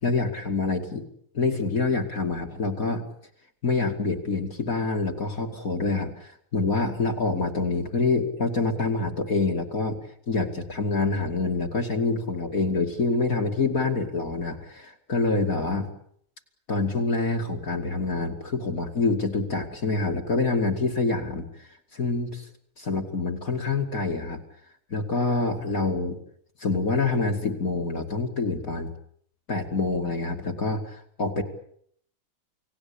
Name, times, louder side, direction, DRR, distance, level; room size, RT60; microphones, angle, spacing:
voice 1, 0.0-1.1 1.3-3.0 3.6-10.0 10.3-15.9 16.7-22.5 22.8-24.4 24.9-26.2 26.6-28.9 29.5-31.4, left 3 dB, 40° left, 3 dB, 2.8 m, -26 dB
30.0 x 18.5 x 8.6 m, 0.68 s
omnidirectional pair, 2.3 m